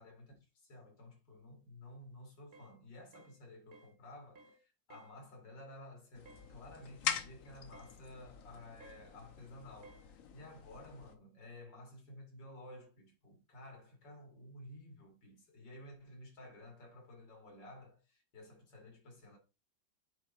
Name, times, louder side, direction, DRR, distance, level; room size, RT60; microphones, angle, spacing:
voice 1, 0.0-19.4, left 1 dB, 80° left, 3.1 m, -54 dB
sound 1, 2.5-2.8 3.1-3.4 3.7-4.0 4.4-4.6 4.9-5.2 6.3-6.5 7.7-8.0 8.8-9.1 9.8-10.1, right 3 dB, 45° right, 1.0 m, -59 dB
sound 2, 6.1-11.2, left 8 dB, 55° left, 1.1 m, -44 dB
8.7 x 3.5 x 4.2 m
omnidirectional pair, 1.9 m